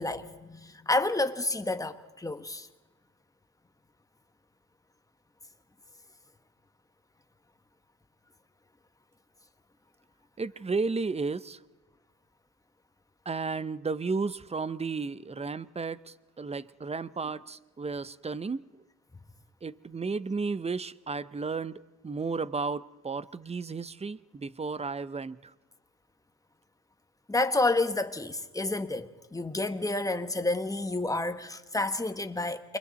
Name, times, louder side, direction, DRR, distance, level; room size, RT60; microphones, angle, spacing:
voice 1, 0.0-2.7 27.3-32.8, left 2 dB, 10° left, 1.3 m, -30 dB
voice 2, 10.4-11.6 13.3-18.7 19.6-25.5, right 4 dB, 20° right, 0.7 m, -33 dB
29.0 x 23.0 x 4.1 m
cardioid pair, 90°, 30 cm